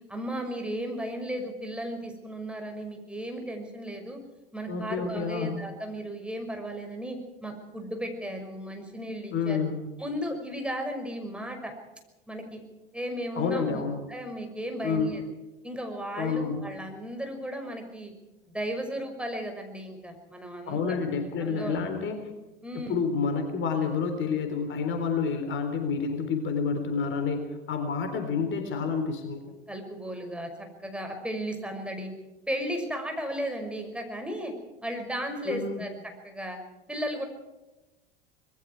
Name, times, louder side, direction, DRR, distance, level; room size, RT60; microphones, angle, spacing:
voice 1, 0.1-4.2 4.5-9.7 10.0-11.7 12.3-12.6 12.9-13.8 14.1-15.2 15.6-18.1 18.4-21.0 21.4-21.9 22.6-23.0 29.7-32.1 32.5-34.5 34.8-35.9 36.2-36.6 36.9-37.2, equal, 5° right, 3 dB, 5.9 m, -35 dB
voice 2, 4.7-5.6 9.3-9.8 13.4-14.0 14.8-15.2 16.2-16.8 20.7-22.2 22.7-29.4 35.5-35.8, left 5 dB, 40° left, 7 dB, 3.7 m, -29 dB
26.0 x 21.0 x 4.7 m, 1.0 s
hypercardioid pair, 80°, 30 cm